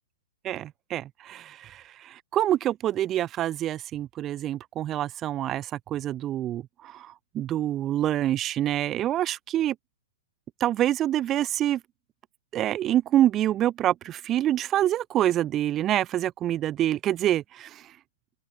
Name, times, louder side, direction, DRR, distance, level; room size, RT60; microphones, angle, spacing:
voice 1, 0.4-9.8 10.6-11.8 12.5-17.8, right 12 dB, 15° right, 5.3 m, -26 dB
open air
hypercardioid pair, 180°, 0 cm